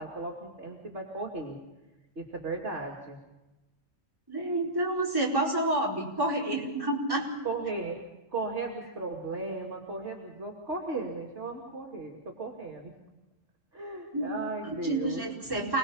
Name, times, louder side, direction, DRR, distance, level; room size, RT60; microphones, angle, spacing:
voice 1, 0.0-1.6 2.2-3.2 7.4-8.0 8.3-12.9 13.7-15.5, right 3 dB, 60° right, -2 dB, 3.1 m, -36 dB
voice 2, 4.3-7.5 14.1-14.4 14.8-15.8, right 1 dB, 15° right, -3 dB, 4.5 m, -29 dB
28.5 x 19.5 x 5.7 m, 1.0 s
omnidirectional pair, 1.3 m